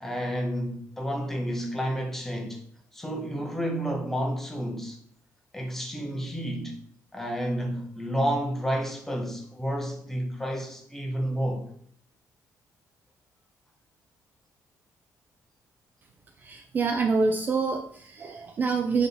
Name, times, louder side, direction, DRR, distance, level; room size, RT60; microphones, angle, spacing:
voice 1, 0.0-2.6 2.9-5.0 5.5-6.8 7.1-11.7, equal, 5° left, 0.7 m, -30 dB
voice 2, 16.4-19.1, right 4 dB, 30° right, 0.3 m, -26 dB
3.6 x 3.4 x 3.9 m
cardioid pair, 175°, 6 cm